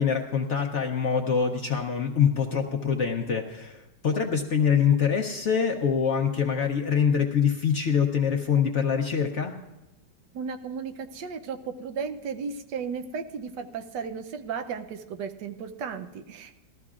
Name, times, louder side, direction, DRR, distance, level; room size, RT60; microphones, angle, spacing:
voice 1, 0.0-9.6, left 7 dB, 55° left, 2 dB, 0.8 m, -24 dB
voice 2, 10.3-16.5, right 6 dB, 80° right, 8 dB, 1.3 m, -35 dB
19.0 x 13.5 x 2.4 m, 0.97 s
omnidirectional pair, 1.9 m